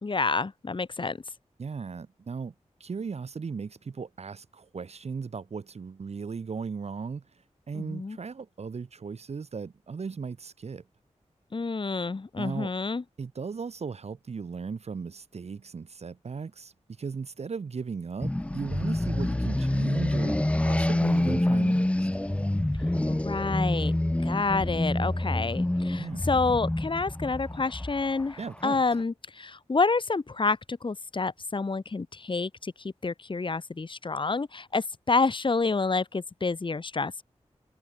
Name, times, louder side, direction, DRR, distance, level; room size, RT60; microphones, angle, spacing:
voice 1, 0.0-1.2 7.7-8.2 11.5-13.0 23.1-24.0 24.2-37.2, left 4 dB, 45° left, 1.3 m, -28 dB
voice 2, 1.6-2.5 2.8-10.8 12.4-12.7 13.2-22.1 26.0-26.3 28.4-28.8, right 5 dB, 60° right, 0.8 m, -37 dB
sound 1, 18.2-28.9, left 1 dB, 10° left, 0.6 m, -27 dB
wide cardioid pair, 70°, 12 cm